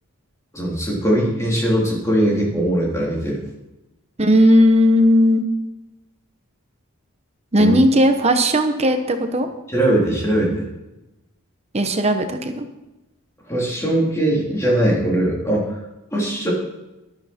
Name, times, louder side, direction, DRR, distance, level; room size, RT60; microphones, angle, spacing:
voice 1, 0.5-3.4 7.6-7.7 9.7-10.7 13.5-15.8 16.1-16.5, right 1 dB, 15° left, -4 dB, 3.5 m, -20 dB
voice 2, 4.2-5.5 7.5-9.5 11.7-12.7, equal, 30° right, 7 dB, 1.0 m, -16 dB
13.0 x 12.0 x 4.4 m, 1.0 s
head